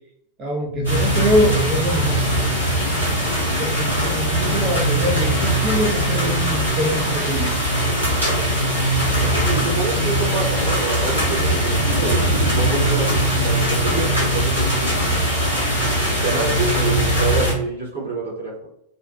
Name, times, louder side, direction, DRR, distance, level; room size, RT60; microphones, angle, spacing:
voice 1, 0.4-2.2 3.6-7.5, equal, 30° right, -2 dB, 0.5 m, -23 dB
sound 1, 0.6-17.6, right 2 dB, 70° left, 0.4 m, -25 dB
sound 2, 0.8-17.5, equal, 85° right, 1.4 m, -22 dB
sound 3, 5.0-11.2, equal, ahead, 0.8 m, -39 dB
voice 2, 9.1-15.0 16.2-18.7, right 3 dB, 70° right, -5 dB, 1.0 m, -27 dB
2.6 x 2.1 x 2.3 m, 0.78 s
figure-of-eight pair, 90°, 0 cm